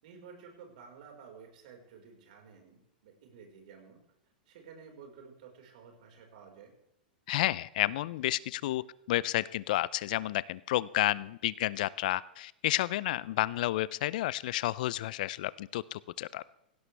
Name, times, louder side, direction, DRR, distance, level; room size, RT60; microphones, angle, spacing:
voice 1, 0.0-4.0 4.5-6.7, right 6 dB, 60° right, 2 dB, 4.9 m, -52 dB
voice 2, 7.3-16.4, left 15 dB, 60° left, 20 dB, 0.5 m, -31 dB
18.0 x 16.5 x 3.4 m, 0.81 s
hypercardioid pair, 105°, 5 cm